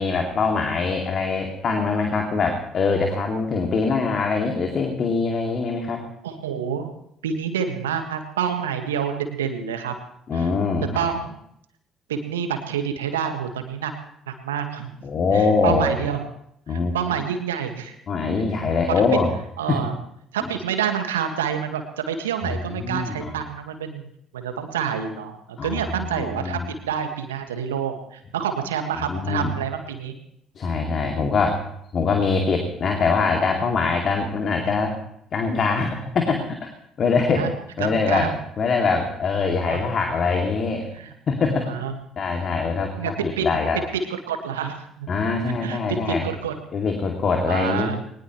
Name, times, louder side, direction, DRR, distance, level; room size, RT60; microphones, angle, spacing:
voice 1, 0.0-6.0 10.3-10.9 15.0-16.1 16.7-16.9 18.1-19.3 19.7-19.8 22.7-23.3 25.6-26.6 29.1-29.5 30.6-31.6 31.9-35.0 35.3-36.7 37.0-37.5 37.8-38.3 38.6-40.9 41.3-41.7 42.2-43.8 45.1-46.3 46.7-47.9, left 4 dB, 45° left, 2 dB, 2.5 m, -23 dB
voice 2, 6.2-6.9 7.2-9.9 10.3-10.5 10.9-11.4 12.1-13.9 14.3-14.9 15.3-16.2 16.7-17.9 18.9-19.2 19.6-19.9 20.3-24.1 24.3-30.1 37.3-37.5 37.8-38.3 39.7-39.8 40.9-41.1 41.7-41.9 43.0-43.6 44.3-45.1 45.6-46.6 47.5-48.0, right 7 dB, 80° right, 6 dB, 1.7 m, -28 dB
21.5 x 20.0 x 3.2 m, 0.72 s
figure-of-eight pair, 50°, 0 cm